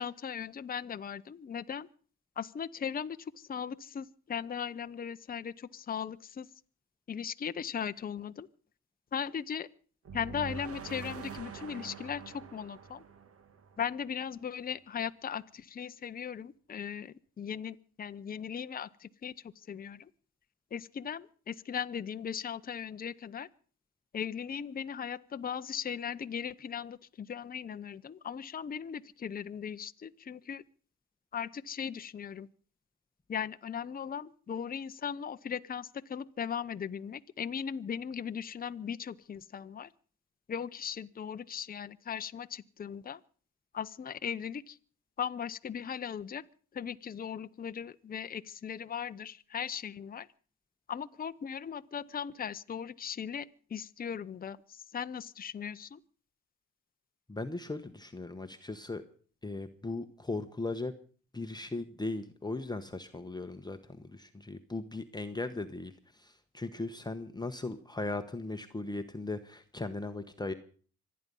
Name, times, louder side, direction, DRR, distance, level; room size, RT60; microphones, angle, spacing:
voice 1, 0.0-1.9 2.4-6.5 7.1-8.5 9.1-9.7 10.1-13.0 13.8-20.1 20.7-23.5 24.1-30.6 31.3-32.5 33.3-39.9 40.5-43.2 43.7-44.8 45.2-46.5 46.7-50.3 50.9-56.0, left 7 dB, 30° left, 11 dB, 0.7 m, -38 dB
sound 1, 10.1-14.1, right 5 dB, 50° right, 1.5 m, -45 dB
voice 2, 57.3-59.0 59.4-60.9 61.3-70.5, left 2 dB, 15° left, 7 dB, 1.0 m, -38 dB
25.5 x 9.6 x 5.4 m, 0.43 s
cardioid pair, 90°, 30 cm